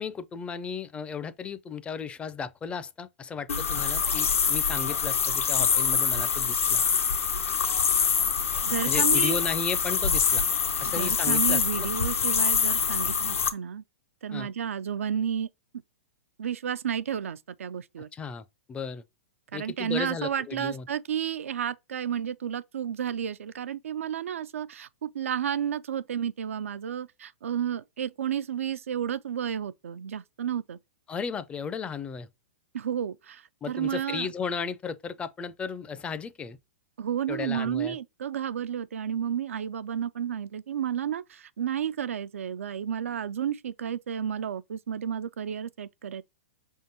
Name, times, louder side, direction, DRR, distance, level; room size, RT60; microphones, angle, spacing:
voice 1, 0.0-6.8 8.9-10.4 10.8-11.9 14.3-14.5 18.1-19.0 19.5-20.9 31.1-32.3 33.6-36.6 37.3-38.0, left 6 dB, 15° left, 0.4 m, -35 dB
sound 1, 3.5-13.5, left 6 dB, 85° left, 0.8 m, -25 dB
voice 2, 8.6-9.4 10.8-13.8 14.2-15.5 16.4-18.1 19.5-30.8 32.7-34.3 37.0-46.2, right 9 dB, 85° right, 0.4 m, -31 dB
5.0 x 3.7 x 2.6 m
hypercardioid pair, 125°, 7 cm